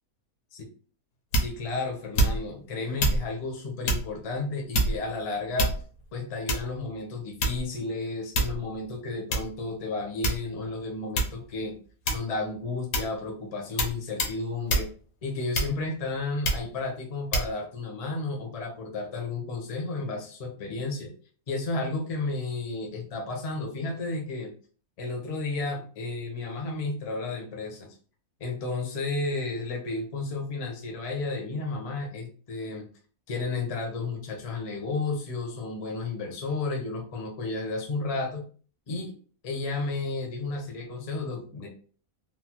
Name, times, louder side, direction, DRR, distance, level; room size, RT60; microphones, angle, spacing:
sound 1, 1.3-1.7 2.1-2.6 3.0-3.2 3.8-4.1 4.7-5.1 5.6-6.0 6.5-6.8 7.4-7.8 8.3-8.7 9.3-9.5 10.2-10.7 11.1-11.4 12.0-12.4 12.9-13.2 13.8-13.9 14.2-14.4 14.7-14.9 15.5-15.9 16.4-16.7 17.3-17.5, right 1 dB, 70° left, 1.0 m, -26 dB
voice 1, 1.3-5.7 6.1-11.7 12.1-14.9 15.2-21.1 21.5-24.5 25.0-28.0 28.4-32.9 33.3-38.4 38.9-39.1 39.4-41.7, left 3 dB, 40° left, 1 dB, 0.5 m, -32 dB
3.1 x 2.0 x 2.9 m, 0.41 s
omnidirectional pair, 1.6 m